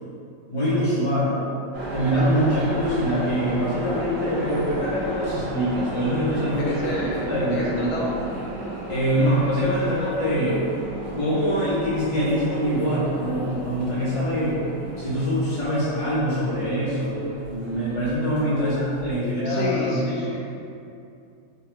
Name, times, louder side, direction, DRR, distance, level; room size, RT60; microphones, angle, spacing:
voice 1, 0.5-1.3 1.9-6.7 7.3-7.9 8.9-10.6 11.1-14.6 15.0-20.2, equal, 30° left, -9 dB, 0.8 m, -24 dB
sound 1, 1.7-19.3, right 1 dB, 55° right, 0.8 m, -34 dB
voice 2, 6.6-8.2 18.6-18.8 19.2-20.4, left 2 dB, 85° left, -3 dB, 1.1 m, -30 dB
2.9 x 2.3 x 3.4 m, 2.5 s
omnidirectional pair, 1.6 m